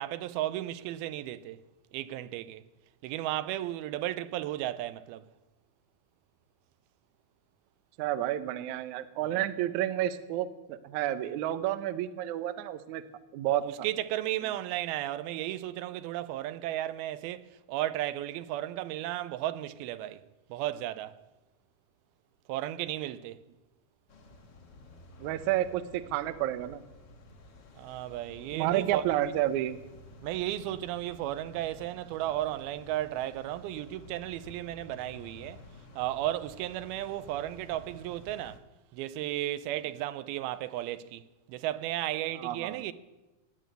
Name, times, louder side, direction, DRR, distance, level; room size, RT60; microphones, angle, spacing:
voice 1, 0.0-1.6 1.9-2.6 3.0-5.2 9.2-9.4 13.5-20.2 20.5-21.1 22.5-23.4 27.8-29.0 30.2-35.6 36.0-38.6 38.9-41.2 41.5-42.9, right 14 dB, 90° right, 2.6 m, -34 dB
voice 2, 8.0-13.0 13.3-13.7 25.2-26.8 28.5-29.8 42.3-42.8, right 13 dB, 75° right, 1.8 m, -30 dB
sound 1, 24.1-38.6, left 2 dB, 45° left, 1.6 m, -52 dB
18.5 x 8.4 x 9.1 m
omnidirectional pair, 4.3 m